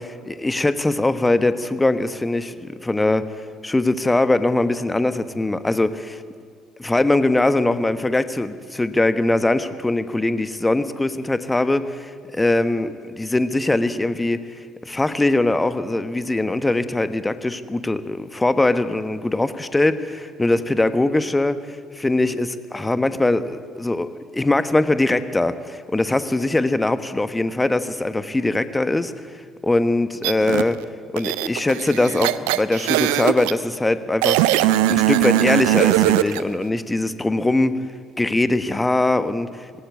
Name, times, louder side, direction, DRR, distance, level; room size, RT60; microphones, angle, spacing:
voice 1, 0.0-6.2 6.8-14.4 14.8-30.8 31.1-34.4 34.9-37.8 38.2-39.8, left 2 dB, 15° left, 12 dB, 1.3 m, -21 dB
sound 1, 30.2-30.6 31.2-33.5 34.2-36.4, right 15 dB, 70° right, 0.6 m, -20 dB
19.5 x 17.5 x 8.4 m, 2.2 s
figure-of-eight pair, 50°, 0 cm